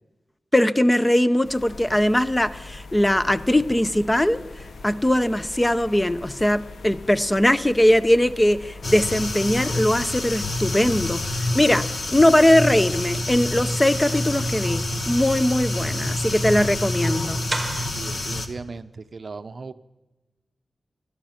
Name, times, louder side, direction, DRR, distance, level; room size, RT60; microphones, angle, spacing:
voice 1, 0.5-4.4 4.8-11.2 11.5-17.4, left 1 dB, 15° left, 13 dB, 0.6 m, -20 dB
sound 1, 1.4-11.7, left 3 dB, 80° left, 0.8 m, -42 dB
sound 2, 8.8-18.5, left 2 dB, 60° left, 1.4 m, -28 dB
sound 3, 12.4-17.9, right 1 dB, 25° right, 1.0 m, -32 dB
voice 2, 18.0-19.7, right 4 dB, 55° right, 11 dB, 0.6 m, -37 dB
18.0 x 12.5 x 5.8 m, 1.1 s
wide cardioid pair, 130°, 0 cm